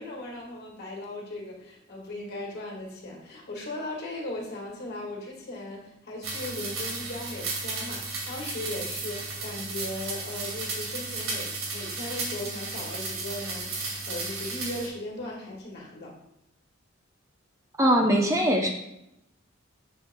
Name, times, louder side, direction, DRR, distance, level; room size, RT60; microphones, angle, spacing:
voice 1, 0.0-16.2, left 1 dB, 50° left, -1 dB, 1.7 m, -38 dB
sound 1, 6.2-14.9, right 3 dB, 80° right, 1.9 m, -34 dB
voice 2, 17.8-18.7, equal, 15° right, 1 dB, 0.6 m, -21 dB
9.5 x 6.3 x 2.2 m, 0.83 s
head